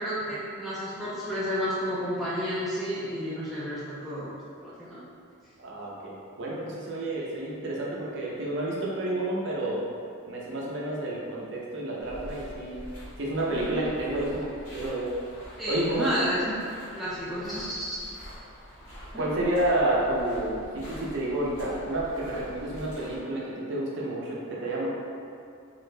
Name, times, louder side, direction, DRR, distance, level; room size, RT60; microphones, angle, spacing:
voice 1, 0.0-4.3 4.6-5.0 15.6-16.4 16.9-18.0 19.1-19.3, equal, ahead, -10 dB, 0.3 m, -31 dB
voice 2, 5.6-9.8 10.3-12.8 13.2-15.1 15.7-16.1 19.1-24.9, right 1 dB, 55° right, -5 dB, 0.6 m, -30 dB
sound 1, 12.0-23.2, equal, 90° left, 1.1 m, -45 dB
2.9 x 2.4 x 3.2 m, 2.4 s
head